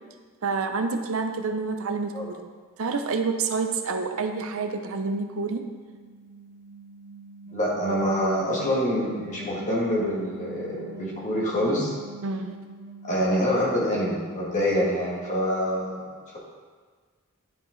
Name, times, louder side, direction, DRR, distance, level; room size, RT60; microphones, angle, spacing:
voice 1, 0.4-2.5 2.8-5.7 12.2-12.5, right 4 dB, 65° right, 6 dB, 0.6 m, -28 dB
sound 1, 5.2-15.3, right 3 dB, 30° right, 2.2 m, -45 dB
voice 2, 7.5-11.9 13.0-16.4, equal, 35° left, -6 dB, 2.1 m, -26 dB
10.5 x 5.1 x 3.9 m, 1.5 s
head